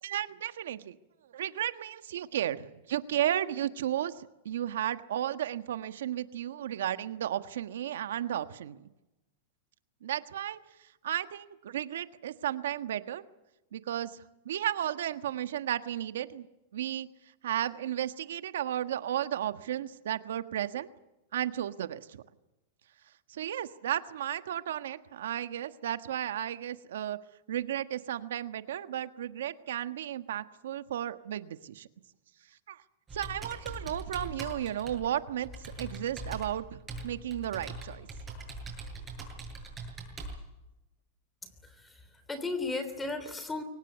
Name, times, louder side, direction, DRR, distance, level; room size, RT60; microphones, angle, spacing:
voice 1, 0.0-1.0 1.3-8.9 10.0-10.6 11.0-13.2 13.7-14.2 14.4-16.5 16.7-17.1 17.4-20.9 21.3-22.2 23.3-27.2 27.5-31.9 32.7-32.8 33.1-38.1, right 11 dB, 80° right, 11 dB, 1.4 m, -34 dB
Computer keyboard, 33.1-40.4, right 2 dB, 20° right, 7.7 m, -42 dB
voice 2, 41.4-43.6, left 3 dB, 10° left, 10 dB, 3.2 m, -36 dB
23.5 x 19.0 x 9.5 m, 0.99 s
supercardioid pair, 135°, 0 cm